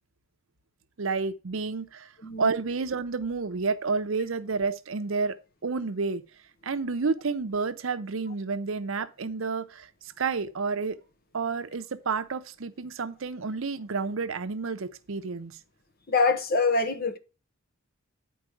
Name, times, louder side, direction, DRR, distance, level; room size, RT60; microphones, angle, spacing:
voice 1, 1.0-2.1 2.4-6.2 6.6-11.0 11.3-15.6, right 4 dB, 65° right, 0.6 m, -30 dB
voice 2, 16.1-17.2, left 3 dB, 45° left, 0.9 m, -24 dB
8.9 x 4.7 x 4.7 m
head